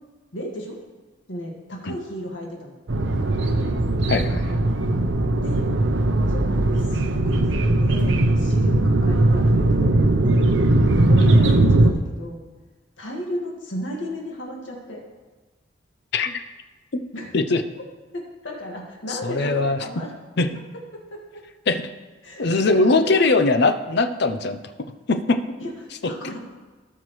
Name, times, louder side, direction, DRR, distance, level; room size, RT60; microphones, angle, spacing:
voice 1, 0.3-0.8 1.3-2.7 5.4-5.7 6.3-10.5 11.1-12.4 13.0-15.0 17.1-17.3 18.1-20.1 20.9-21.4 22.2-23.3 25.6-26.4, equal, 80° left, -1 dB, 1.9 m, -34 dB
sound 1, 2.9-11.9, right 2 dB, 70° right, 0.7 m, -19 dB
voice 2, 4.1-4.6 11.4-11.5 16.1-16.4 16.9-17.0 17.3-17.6 19.1-19.8 20.4-20.5 21.7-21.8 22.4-24.6 25.1-25.4, left 3 dB, 60° left, 9 dB, 0.6 m, -21 dB
17.0 x 5.8 x 3.2 m, 1.3 s
head